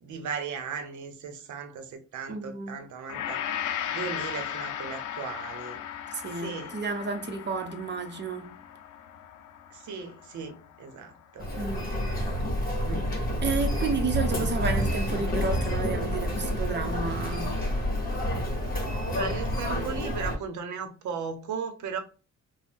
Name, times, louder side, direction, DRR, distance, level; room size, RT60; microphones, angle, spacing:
voice 1, 0.0-3.5 3.9-5.8 6.3-6.8 9.7-11.5 12.8-13.1 19.1-22.0, right 6 dB, 70° right, 0.7 m, -37 dB
voice 2, 2.3-2.8 6.1-8.6 11.5-11.8 13.4-17.5, right 4 dB, 35° right, 0.6 m, -31 dB
Gong, 3.1-11.5 11.9-12.0, left 9 dB, 75° left, 0.5 m, -37 dB
Human voice, 11.4-20.4, equal, 30° left, 1.1 m, -29 dB
2.5 x 2.1 x 3.5 m
cardioid pair, 100°, 30 cm